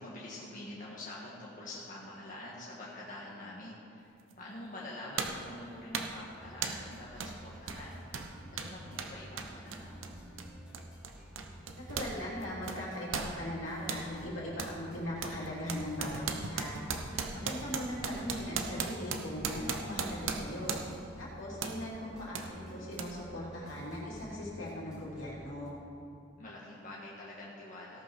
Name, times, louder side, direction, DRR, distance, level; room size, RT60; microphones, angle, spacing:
voice 1, 0.0-8.2 8.4-10.0 17.1-17.6 26.4-28.0, left 1 dB, 40° left, -6 dB, 1.6 m, -46 dB
sound 1, 4.3-4.4 5.2-5.5 5.9-6.2 6.6-6.9 7.2-7.4 7.6-12.2 12.4-14.1 14.6-14.8 15.2-21.1 21.6-21.8 22.3-22.5 23.0-23.1, right 5 dB, 75° right, 0.9 m, -37 dB
sound 2, 6.4-25.7, equal, 5° right, 2.5 m, -51 dB
voice 2, 11.7-16.8 17.3-20.8 21.2-25.7, left 1 dB, 70° left, -5 dB, 3.2 m, -39 dB
17.5 x 5.8 x 6.0 m, 2.5 s
head